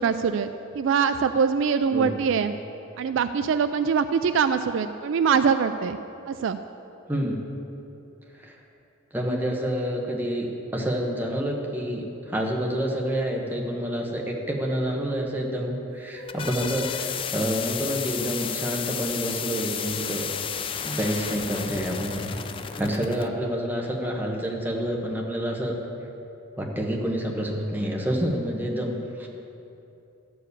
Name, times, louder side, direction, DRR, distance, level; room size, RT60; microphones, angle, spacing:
voice 1, 0.0-2.5 3.0-6.0 6.3-6.6, right 6 dB, 60° right, 10 dB, 0.3 m, -23 dB
voice 2, 7.1-7.4 8.4-8.6 9.1-20.3 20.8-22.4 22.7-25.7 26.6-29.3, equal, 10° right, -1 dB, 1.1 m, -28 dB
sound 1, 16.0-23.3, left 7 dB, 25° left, 0.3 m, -32 dB
12.5 x 4.7 x 8.2 m, 2.8 s
head